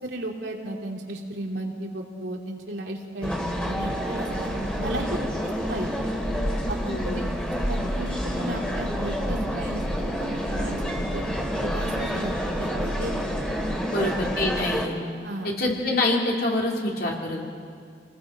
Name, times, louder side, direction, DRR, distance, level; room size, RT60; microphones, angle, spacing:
voice 1, 0.0-3.4 3.6-5.2 5.7-6.1 6.7-7.3 7.7-8.1 8.4-10.8 11.1-11.2 11.6-13.3 14.0-14.1 15.2-15.5, right 1 dB, 80° right, 0 dB, 2.7 m, -34 dB
sound 1, 3.2-14.9, equal, 5° left, 2.4 m, -28 dB
voice 2, 6.8-7.3 13.8-15.0 15.4-17.5, left 2 dB, 60° left, -2 dB, 3.5 m, -26 dB
28.5 x 20.0 x 5.0 m, 2.2 s
head